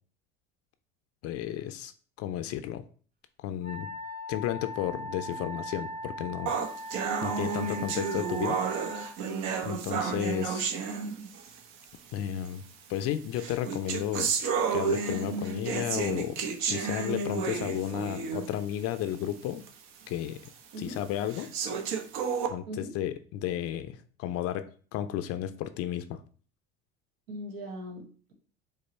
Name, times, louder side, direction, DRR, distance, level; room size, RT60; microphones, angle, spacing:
voice 1, 1.2-1.9 2.2-2.8 3.4-3.9 4.3-6.5 7.2-8.9 9.6-10.6 12.1-12.6 12.9-14.3 14.7-19.7 20.1-20.4 20.8-21.5 22.5-26.2, left 11 dB, 55° left, 10 dB, 0.4 m, -33 dB
Wind instrument woodwind instrument, 3.6-9.2, equal, 30° right, 0.7 m, -39 dB
sound 1, 6.5-11.6 12.5-12.6 13.3-18.6 19.0-19.1 19.7-19.8 20.4-20.5 21.3-22.5, right 6 dB, 65° right, 0.8 m, -31 dB
voice 2, 9.9-10.2 17.6-17.8 20.7-21.0 22.7-23.0 27.3-28.3, equal, 90° right, 2 dB, 1.3 m, -40 dB
5.2 x 2.1 x 4.2 m, 0.42 s
supercardioid pair, 90°, 30 cm